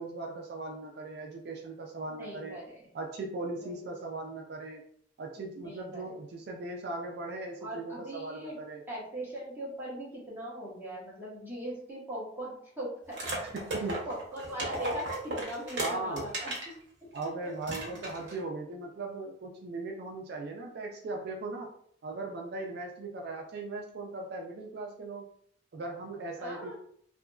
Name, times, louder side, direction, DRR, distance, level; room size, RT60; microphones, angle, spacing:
voice 1, 0.0-2.6 2.9-4.8 5.2-8.8 13.5-14.0 15.8-16.3 17.1-21.7 22.0-25.3 25.7-26.8, right 2 dB, 60° right, 1 dB, 0.4 m, -38 dB
voice 2, 2.2-2.9 3.6-3.9 5.6-6.0 7.6-8.6 8.9-13.2 14.1-16.5 17.2-17.5 26.4-26.8, right 1 dB, 10° right, -7 dB, 1.0 m, -40 dB
sound 1, 13.1-16.7 17.2-17.3 17.6-18.4, right 1 dB, 75° right, 0.9 m, -35 dB
2.8 x 2.5 x 2.3 m, 0.64 s
head